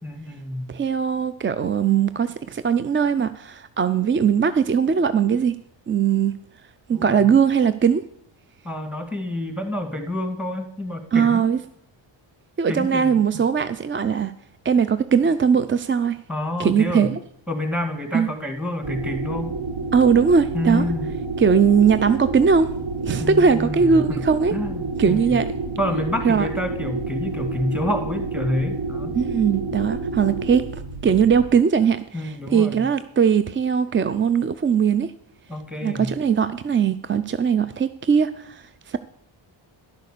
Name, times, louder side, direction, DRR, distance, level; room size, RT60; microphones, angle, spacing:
voice 1, 0.0-0.7 6.9-7.2 8.6-11.5 12.7-13.5 16.3-17.1 17.5-19.5 20.5-21.1 23.2-24.0 24.5-25.4 25.8-29.1 32.1-32.9 35.5-36.1, left 1 dB, 5° right, 6 dB, 1.8 m, -28 dB
voice 2, 0.7-5.6 5.9-6.3 6.9-8.0 11.1-11.6 12.6-14.3 14.6-16.2 16.6-17.2 18.1-18.3 19.9-20.9 21.4-22.7 23.0-24.5 25.0-25.5 26.2-26.5 29.1-35.1 35.8-39.0, right 6 dB, 30° right, 13 dB, 0.4 m, -20 dB
sound 1, 18.8-31.5, right 3 dB, 65° right, 1.4 m, -29 dB
11.5 x 6.6 x 6.6 m, 0.71 s
cardioid pair, 95°, 47 cm